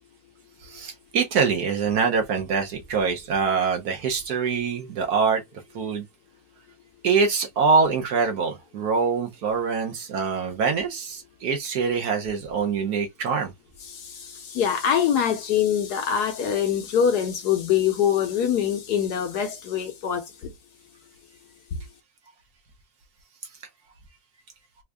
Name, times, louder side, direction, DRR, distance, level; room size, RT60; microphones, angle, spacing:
voice 1, 0.6-5.4 5.7-6.0 7.0-13.5, right 5 dB, 65° right, 1.1 m, -24 dB
voice 2, 13.8-20.5, left 8 dB, 65° left, 1.1 m, -24 dB
3.5 x 2.4 x 3.2 m
omnidirectional pair, 2.1 m